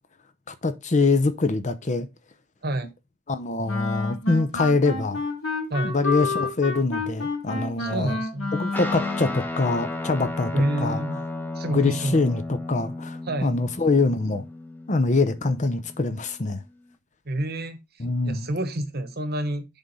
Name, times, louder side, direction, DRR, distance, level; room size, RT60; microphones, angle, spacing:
voice 1, 0.5-2.1 3.3-5.2 5.8-8.2 8.5-10.5 10.8-11.0 11.7-14.4 14.9-16.6 18.0-18.5, left 3 dB, 35° left, 0.7 m, -24 dB
Wind instrument woodwind instrument, 3.7-9.4, left 3 dB, 70° left, 1.8 m, -30 dB
voice 2, 7.8-8.5 10.5-11.2 11.5-12.2 13.3-13.6 17.3-17.8 18.2-19.7, right 1 dB, 45° right, 1.1 m, -28 dB
Guitar, 8.7-16.4, left 2 dB, 10° left, 0.9 m, -34 dB
7.2 x 3.7 x 5.3 m
head